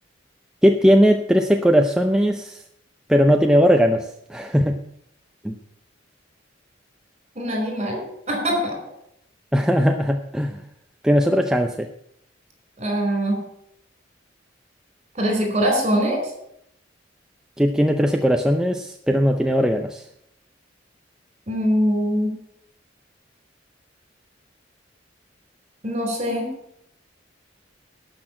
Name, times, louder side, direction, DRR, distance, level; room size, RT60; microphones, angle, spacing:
voice 1, 0.6-2.6 3.1-4.8 5.4-5.6 9.5-10.6 11.0-11.9 17.6-20.1, equal, 5° right, 4 dB, 0.6 m, -18 dB
voice 2, 7.3-8.8 12.8-13.4 15.1-16.2 21.5-22.3 25.8-26.5, equal, 35° right, 3 dB, 4.8 m, -22 dB
12.0 x 6.3 x 8.8 m, 0.75 s
head